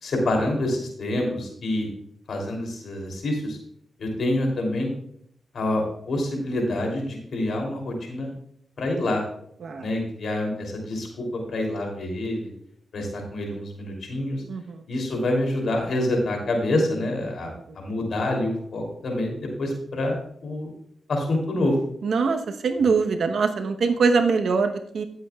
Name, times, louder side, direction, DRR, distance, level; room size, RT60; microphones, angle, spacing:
voice 1, 0.0-1.9 2.3-3.6 4.0-4.9 5.5-8.3 8.8-9.2 9.7-12.5 12.9-14.4 14.9-20.7 21.1-21.8, left 1 dB, 70° left, 1 dB, 3.0 m, -27 dB
voice 2, 14.5-14.8 17.4-17.8 22.0-25.0, right 4 dB, 75° right, 6 dB, 1.0 m, -23 dB
15.0 x 7.8 x 2.4 m, 0.67 s
cardioid pair, 55°, 0 cm